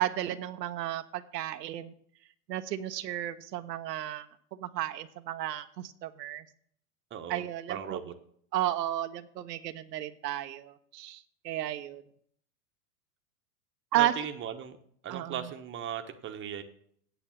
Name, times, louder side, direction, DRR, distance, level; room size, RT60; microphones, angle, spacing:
voice 1, 0.0-1.9 2.5-4.3 4.5-6.4 7.3-8.0 8.5-12.0 13.9-14.1 15.1-15.4, right 13 dB, 80° right, 9 dB, 0.9 m, -33 dB
voice 2, 7.1-7.4 7.7-8.1 13.9-14.8 15.0-16.6, right 8 dB, 25° right, 6 dB, 1.1 m, -37 dB
8.9 x 8.0 x 7.4 m, 0.65 s
hypercardioid pair, 115°, 48 cm